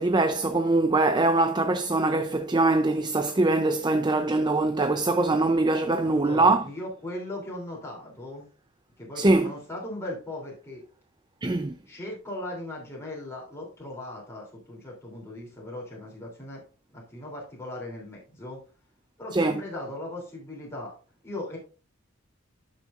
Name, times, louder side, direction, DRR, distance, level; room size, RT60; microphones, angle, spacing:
voice 1, 0.0-6.6 9.2-9.5 11.4-11.7 19.3-19.6, right 2 dB, 20° right, 0.6 m, -23 dB
voice 2, 6.0-8.5 9.0-10.8 11.9-16.6 16.9-18.6 19.2-20.9 21.2-21.6, left 1 dB, 15° left, 3.2 m, -38 dB
11.5 x 6.4 x 2.5 m
head